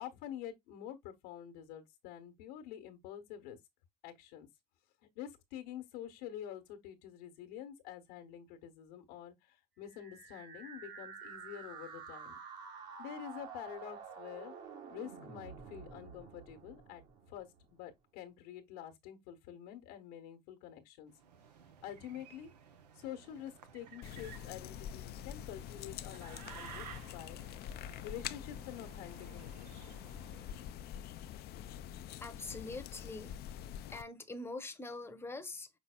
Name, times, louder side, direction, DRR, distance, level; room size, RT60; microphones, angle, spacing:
voice 1, 0.0-3.6 4.0-4.5 5.0-12.4 13.0-14.5 14.9-17.0 17.3-21.1 21.8-22.5 22.9-26.9 27.1-27.4 28.0-30.0, left 10 dB, 75° left, 1.1 m, -47 dB
sound 1, 9.8-17.8, right 6 dB, 60° right, 1.8 m, -50 dB
sound 2, 21.1-30.9, right 8 dB, 90° right, 0.7 m, -55 dB
sound 3, 24.0-34.0, left 10 dB, 55° left, 0.4 m, -46 dB
voice 2, 32.2-33.4 33.9-35.8, left 2 dB, 10° left, 0.8 m, -44 dB
5.9 x 4.0 x 2.2 m
hypercardioid pair, 70°, 20 cm